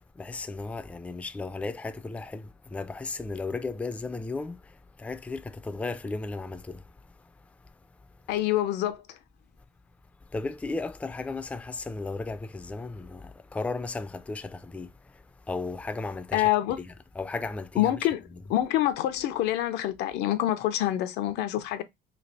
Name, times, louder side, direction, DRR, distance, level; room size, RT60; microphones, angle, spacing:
voice 1, 0.0-6.8 10.3-15.2 15.5-16.5 16.8-17.9, left 3 dB, 10° left, 0.3 m, -35 dB
voice 2, 8.3-9.0 16.3-16.8 17.8-18.2 18.5-21.8, left 13 dB, 90° left, 0.5 m, -26 dB
3.2 x 2.4 x 3.9 m
cardioid pair, 110°, 17 cm